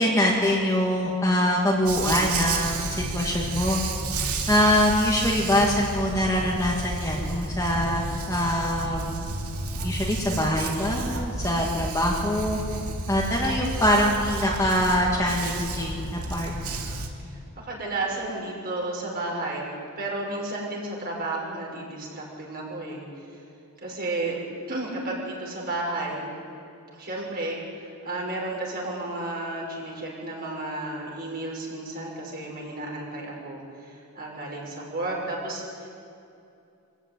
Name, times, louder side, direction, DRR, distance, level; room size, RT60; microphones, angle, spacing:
voice 1, 0.0-3.8 4.5-9.1 9.8-12.6 13.1-16.5, equal, 15° left, -4 dB, 2.4 m, -24 dB
Dog, 1.9-17.1, right 2 dB, 75° right, 2.4 m, -31 dB
voice 2, 17.2-19.6 20.0-23.4 23.8-24.4 24.7-26.3 26.9-35.9, right 2 dB, 45° right, -2 dB, 6.3 m, -32 dB
25.5 x 15.0 x 9.3 m, 2.6 s
head